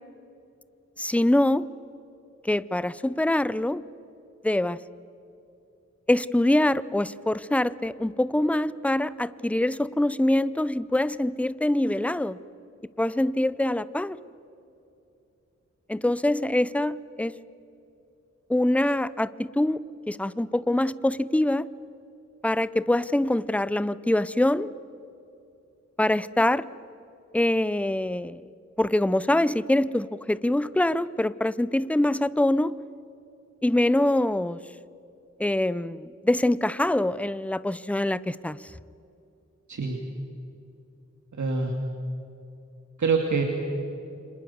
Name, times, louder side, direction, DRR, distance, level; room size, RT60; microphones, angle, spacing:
voice 1, 1.0-1.7 2.4-3.8 4.4-4.8 6.1-12.4 13.0-14.2 15.9-17.3 18.5-21.7 22.4-24.7 26.0-26.6 27.3-28.4 28.8-32.7 33.6-34.6 35.4-38.6, left 1 dB, 5° left, 17 dB, 0.6 m, -24 dB
voice 2, 41.3-41.7 43.0-43.4, right 4 dB, 80° right, 1 dB, 2.6 m, -25 dB
29.5 x 25.5 x 7.2 m, 2.8 s
wide cardioid pair, 90°, 29 cm